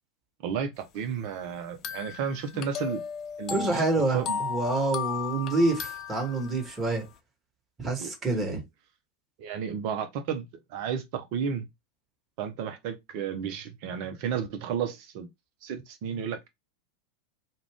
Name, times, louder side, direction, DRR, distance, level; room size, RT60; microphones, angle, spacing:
voice 1, 0.4-3.0 3.4-3.8 4.1-4.4 8.0-8.6 9.4-11.7 12.4-15.3 15.6-16.5, right 7 dB, 50° right, 0.6 m, -33 dB
sound 1, 1.8-6.8, left 6 dB, 35° left, 0.4 m, -35 dB
voice 2, 3.5-7.0 7.8-8.6, right 2 dB, 20° right, 1.2 m, -27 dB
2.4 x 2.2 x 3.4 m
figure-of-eight pair, 85°, 0 cm